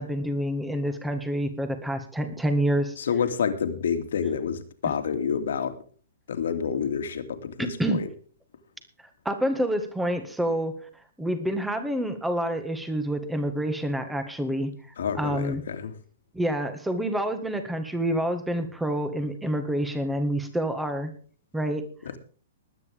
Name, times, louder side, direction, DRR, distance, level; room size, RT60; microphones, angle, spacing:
voice 1, 0.0-2.9 7.6-8.0 9.3-10.8 11.2-14.7 15.2-15.6 16.3-21.1 21.5-21.8, right 1 dB, 5° right, 8 dB, 1.9 m, -27 dB
voice 2, 3.0-5.7 6.3-8.1 15.0-15.9 22.0-22.2, left 7 dB, 80° left, 9 dB, 2.6 m, -28 dB
20.0 x 9.7 x 3.6 m, 0.41 s
hypercardioid pair, 155°, 0 cm